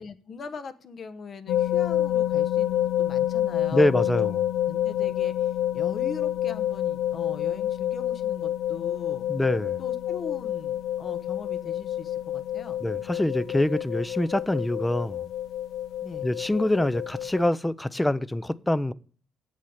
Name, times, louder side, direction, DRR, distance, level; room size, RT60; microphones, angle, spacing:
voice 1, 0.0-4.4 4.7-9.3 9.8-12.8 16.0-16.3, left 4 dB, 50° left, 1.0 m, -41 dB
sound 1, 1.5-17.5, left 12 dB, 80° left, 0.4 m, -28 dB
voice 2, 3.7-4.4 9.3-9.8 12.8-15.2 16.2-18.9, left 1 dB, 10° left, 0.5 m, -25 dB
7.9 x 7.4 x 8.7 m
cardioid pair, 90°, 0 cm